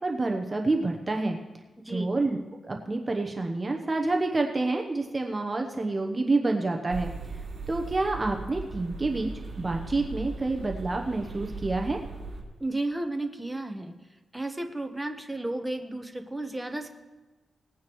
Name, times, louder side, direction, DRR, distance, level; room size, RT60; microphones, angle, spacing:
voice 1, 0.0-1.4 1.9-2.4 2.6-7.1 7.7-9.3 9.6-12.0, right 2 dB, 30° right, 3 dB, 0.9 m, -28 dB
sound 1, 6.9-12.4, right 3 dB, 55° right, 2.7 m, -38 dB
voice 2, 12.6-13.9 14.3-16.9, right 2 dB, 10° right, 4 dB, 1.1 m, -33 dB
19.5 x 9.4 x 3.1 m, 1.2 s
cardioid pair, 90°, 0 cm